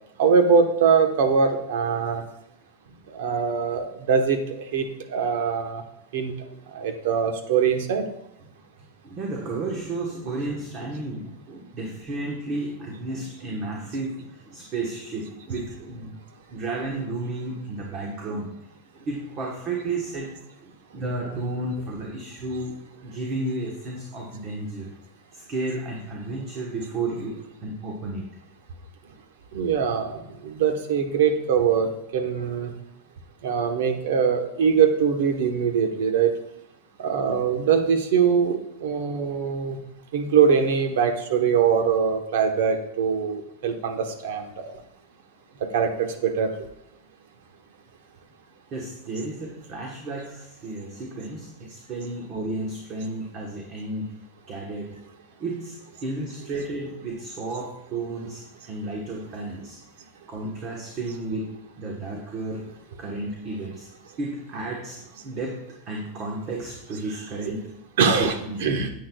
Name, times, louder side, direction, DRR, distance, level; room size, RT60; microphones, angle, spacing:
voice 1, 0.2-2.2 3.1-4.4 4.7-5.8 6.1-6.3 6.7-8.0 29.5-30.2 30.4-32.7 33.4-36.3 37.0-39.8 40.1-44.5 45.7-46.5 68.0-68.9, right 6 dB, 70° right, 6 dB, 1.1 m, -22 dB
voice 2, 8.8-16.2 16.5-18.5 18.9-20.3 20.6-22.7 23.0-24.9 25.3-28.3 48.7-54.1 54.5-54.9 55.4-59.8 60.3-61.5 61.8-62.6 63.0-63.9 64.2-67.6 68.2-68.6, right 2 dB, 30° right, -1 dB, 1.2 m, -32 dB
10.0 x 8.5 x 2.3 m, 0.82 s
supercardioid pair, 165°, 0 cm